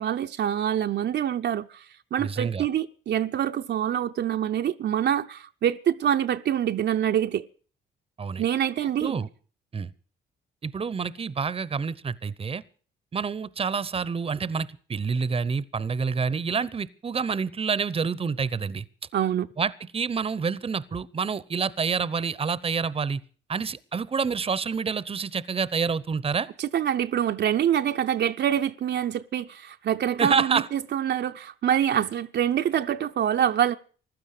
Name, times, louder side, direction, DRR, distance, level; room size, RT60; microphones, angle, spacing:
voice 1, 0.0-1.8 2.1-7.5 8.4-9.2 19.1-19.5 26.6-33.8, right 10 dB, 60° right, 0.7 m, -25 dB
voice 2, 2.2-2.7 8.2-8.4 9.0-9.3 9.7-9.9 10.6-12.6 13.1-18.8 19.6-23.2 23.5-26.5 30.2-30.7, right 5 dB, 30° right, 0.8 m, -28 dB
15.5 x 12.0 x 6.6 m
cardioid pair, 90°, 20 cm